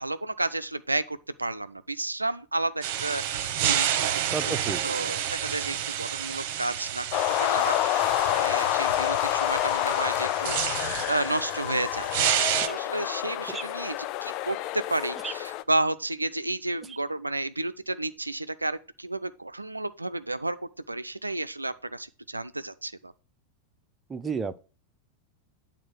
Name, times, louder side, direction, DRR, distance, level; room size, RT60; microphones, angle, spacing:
voice 1, 0.0-4.6 4.8-7.1 7.4-7.8 8.3-23.1, right 2 dB, 85° right, 0.3 m, -32 dB
sound 1, 2.8-12.7, right 10 dB, 45° right, 0.8 m, -30 dB
voice 2, 4.3-4.8 12.7-12.8 13.5-13.6 15.2-15.3 24.1-24.6, right 5 dB, 15° right, 0.6 m, -32 dB
sound 2, 7.1-15.6, left 14 dB, 40° left, 0.4 m, -28 dB
8.9 x 3.8 x 6.2 m
figure-of-eight pair, 90°, 0 cm